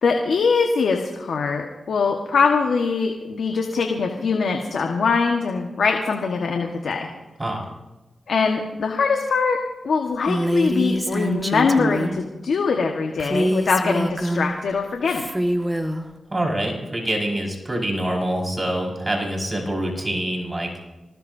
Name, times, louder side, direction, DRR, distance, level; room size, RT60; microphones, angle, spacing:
voice 1, 0.0-7.1 8.3-9.6 9.8-15.2, left 5 dB, 75° left, 2 dB, 1.5 m, -22 dB
Female speech woman speaking, 10.3-12.2 13.2-14.6 15.1-16.0, equal, 10° right, 1.7 m, -24 dB
voice 2, 16.3-20.8, right 1 dB, 30° right, 0 dB, 5.5 m, -25 dB
26.5 x 19.5 x 2.8 m, 1.1 s
cardioid pair, 50°, 0 cm